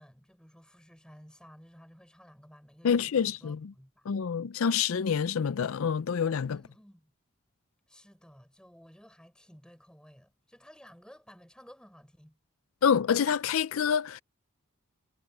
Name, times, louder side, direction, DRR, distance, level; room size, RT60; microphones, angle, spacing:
voice 1, 0.0-4.1 6.5-7.1 7.9-12.4, equal, 5° left, 6.9 m, -55 dB
voice 2, 2.8-3.6 4.1-6.6 12.8-14.2, left 7 dB, 75° left, 0.4 m, -27 dB
head